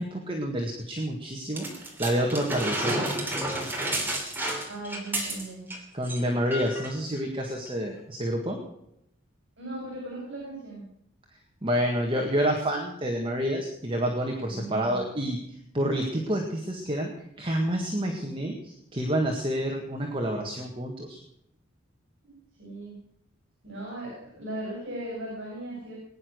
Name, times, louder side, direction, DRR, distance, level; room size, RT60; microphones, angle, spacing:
voice 1, 0.0-3.0 5.9-8.6 11.6-15.4 15.7-17.1 17.4-21.2, equal, 25° right, 1 dB, 1.8 m, -28 dB
sound 1, 1.6-5.8 6.0-6.2 6.5-6.9 7.7-7.8, right 1 dB, 10° right, 3.0 m, -31 dB
voice 2, 3.4-3.8 4.7-5.7 9.6-10.8 14.5-15.2 22.3-23.0 23.6-26.0, right 1 dB, 65° right, -3 dB, 6.5 m, -38 dB
21.0 x 10.0 x 6.4 m, 0.76 s
head